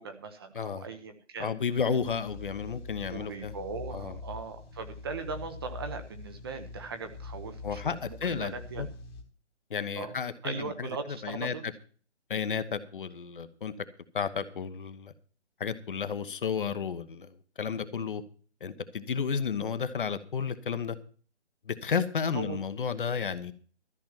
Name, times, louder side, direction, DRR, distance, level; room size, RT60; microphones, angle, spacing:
voice 1, 0.0-1.5 3.1-8.8 10.0-11.6 22.3-22.6, right 4 dB, 20° right, 0.8 m, -39 dB
voice 2, 0.5-0.9 1.4-3.5 3.9-4.2 7.6-8.9 9.7-11.5 12.3-13.7 14.1-15.1 15.6-18.2 18.6-21.0 21.7-23.5, left 6 dB, 45° left, 1.1 m, -32 dB
sound 1, 2.0-9.2, left 4 dB, 20° left, 1.4 m, -44 dB
13.5 x 5.7 x 9.0 m
figure-of-eight pair, 150°, 35 cm